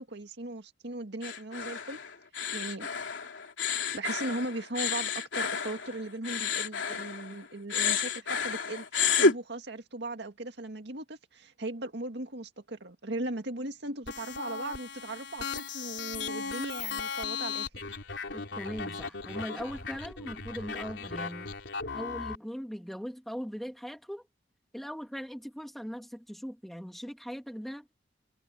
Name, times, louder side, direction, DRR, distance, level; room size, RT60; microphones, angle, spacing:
voice 1, 0.0-2.0 2.5-2.9 3.9-8.9 9.2-17.7, right 2 dB, 65° right, 2.1 m, -38 dB
Claire Breathing A, 1.2-7.4 7.7-9.4, left 5 dB, 85° left, 3.0 m, -30 dB
sound 1, 14.1-22.4, left 5 dB, 70° left, 4.1 m, -37 dB
voice 2, 18.3-21.5 21.9-24.3 24.7-27.9, equal, ahead, 3.0 m, -40 dB
head